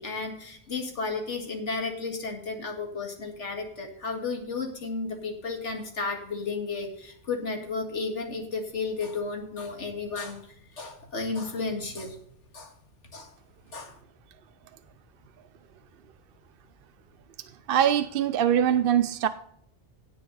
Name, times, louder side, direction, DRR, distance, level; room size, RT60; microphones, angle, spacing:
voice 1, 0.0-12.2 12.5-12.7 13.1-13.3 13.7-14.0, left 4 dB, 90° left, 2.2 m, -33 dB
voice 2, 17.7-19.3, right 9 dB, 60° right, 0.7 m, -22 dB
17.0 x 7.0 x 4.0 m
omnidirectional pair, 1.2 m